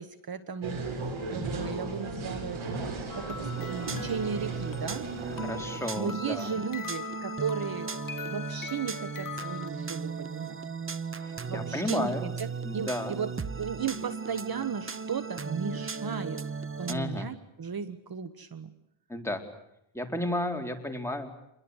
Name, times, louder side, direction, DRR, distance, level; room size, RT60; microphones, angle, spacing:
voice 1, 0.0-5.1 6.0-7.9 8.3-10.6 11.4-16.4 16.8-18.7, right 6 dB, 45° right, 11 dB, 1.4 m, -35 dB
sound 1, 0.6-5.8, right 3 dB, 70° right, 6.5 m, -36 dB
sound 2, 3.1-9.7, left 8 dB, 40° left, 1.3 m, -43 dB
sound 3, 3.4-16.9, right 5 dB, 25° right, 1.1 m, -37 dB
voice 2, 5.4-6.5 11.2-12.3 12.6-13.2 16.9-17.3 19.1-19.4 19.9-21.3, left 1 dB, 5° left, 3 dB, 4.1 m, -33 dB
27.5 x 22.0 x 8.2 m, 0.81 s
cardioid pair, 95°, 50 cm